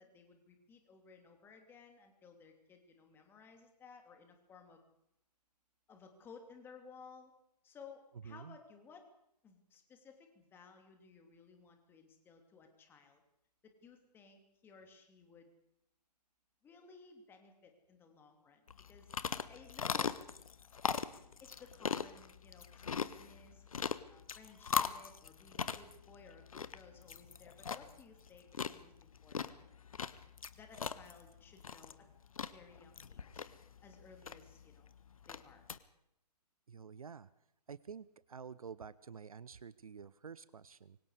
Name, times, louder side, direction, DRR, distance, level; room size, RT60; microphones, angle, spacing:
voice 1, 0.0-4.8 5.9-7.3 7.6-9.1 9.4-13.2 13.6-15.5 16.6-20.1 21.4-23.6 24.1-29.7 30.5-32.1 32.4-33.5 33.8-34.9 35.3-35.7, left 5 dB, 10° left, 5 dB, 2.9 m, -58 dB
voice 2, 8.2-8.6 36.7-37.3 37.7-41.0, right 6 dB, 55° right, 19 dB, 0.9 m, -49 dB
sound 1, 18.7-35.8, left 6 dB, 55° left, 1.3 m, -41 dB
26.5 x 24.0 x 5.0 m, 0.79 s
figure-of-eight pair, 135°, 21 cm